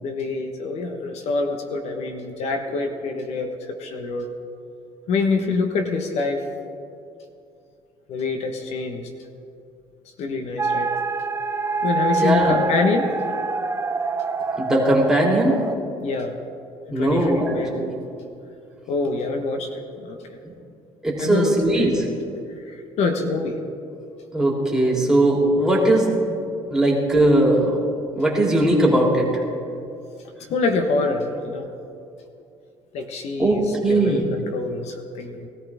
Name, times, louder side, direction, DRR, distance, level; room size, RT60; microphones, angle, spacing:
voice 1, 0.0-4.3 5.1-6.5 8.1-9.1 10.2-10.9 11.8-13.1 16.0-16.3 16.9-17.7 18.9-19.7 20.0-20.4 21.2-22.0 22.7-23.6 30.5-31.7 32.9-35.5, left 3 dB, 70° left, 5 dB, 1.3 m, -25 dB
sound 1, 10.6-15.8, right 4 dB, 20° right, 0.6 m, -25 dB
voice 2, 12.2-12.6 14.6-15.6 16.9-17.9 21.0-21.9 24.3-26.2 26.7-27.8 28.1-29.3 33.4-34.2, right 1 dB, 5° right, -4 dB, 3.4 m, -19 dB
20.5 x 14.0 x 3.6 m, 2.6 s
cardioid pair, 95°, 11 cm